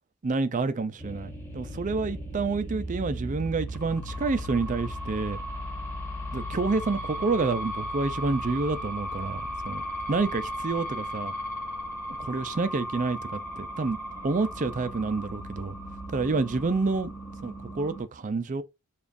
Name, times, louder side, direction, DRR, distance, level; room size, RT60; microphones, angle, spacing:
voice 1, 0.2-5.4 6.3-9.8 10.1-11.3 12.2-14.0 14.2-15.8 16.1-17.1 17.4-18.6, right 3 dB, 35° right, 0.4 m, -28 dB
sound 1, 1.0-18.0, equal, 10° left, 1.4 m, -36 dB
7.0 x 2.4 x 2.5 m
head